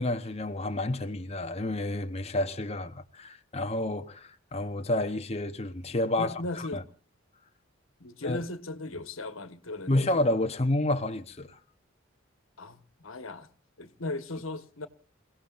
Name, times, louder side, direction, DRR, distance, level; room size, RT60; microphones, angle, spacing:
voice 1, 0.0-6.8 8.2-8.4 9.9-11.6, left 1 dB, 30° left, 1.0 m, -30 dB
voice 2, 6.2-6.8 8.0-10.1 12.6-13.5 13.8-14.9, left 2 dB, 90° left, 1.5 m, -37 dB
28.0 x 17.0 x 2.6 m
head